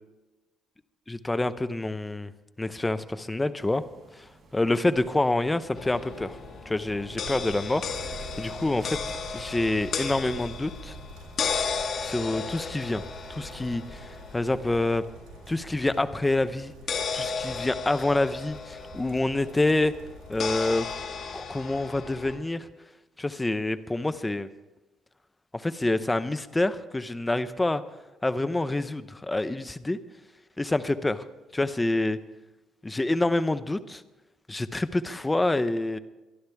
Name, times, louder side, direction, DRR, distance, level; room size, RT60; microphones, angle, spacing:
voice 1, 1.1-2.3 2.6-3.8 4.5-6.4 6.7-9.0 9.3-11.0 12.0-13.0 13.3-15.0 15.5-16.7 17.1-19.9 20.3-20.9 21.3-22.7 23.2-24.5 25.5-27.8 28.2-30.0 30.6-31.2 31.5-32.2 32.8-34.0 34.5-36.0, left 2 dB, 15° left, 12 dB, 0.8 m, -27 dB
sound 1, 3.6-14.6, right 1 dB, 40° right, 6.7 m, -49 dB
sound 2, 5.8-22.4, left 5 dB, 55° left, 1.7 m, -35 dB
sound 3, 7.2-21.0, right 4 dB, 90° right, 4.1 m, -47 dB
24.0 x 11.5 x 3.5 m, 1.1 s
cardioid pair, 95°, 0 cm